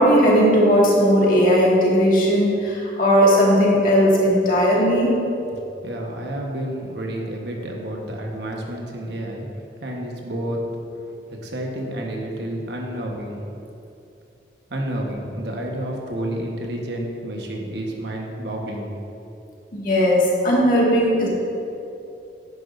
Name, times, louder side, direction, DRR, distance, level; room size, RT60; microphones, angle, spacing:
voice 1, 0.0-5.1 19.7-21.3, equal, 50° left, -4 dB, 1.9 m, -17 dB
voice 2, 5.8-9.5 9.8-10.6 11.3-13.4 14.7-18.9, right 1 dB, 70° right, 0 dB, 1.2 m, -30 dB
10.5 x 10.5 x 2.6 m, 2.7 s
head